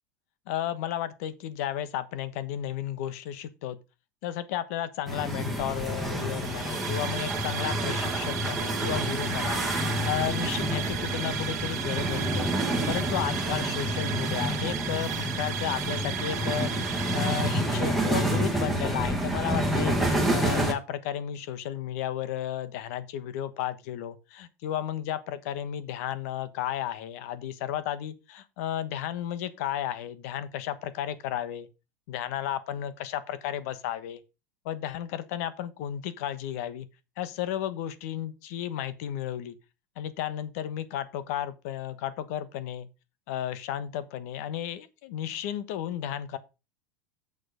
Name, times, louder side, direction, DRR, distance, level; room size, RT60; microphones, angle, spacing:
voice 1, 0.5-3.8 4.2-12.5 12.9-31.7 32.1-34.2 34.6-36.9 37.2-39.6 40.0-42.9 43.3-46.4, left 11 dB, 60° left, 1.2 m, -33 dB
sound 1, 5.1-20.7, right 1 dB, ahead, 1.7 m, -29 dB
sound 2, 6.3-18.1, right 13 dB, 80° right, 1.3 m, -36 dB
7.6 x 6.8 x 5.1 m
supercardioid pair, 165°, 9 cm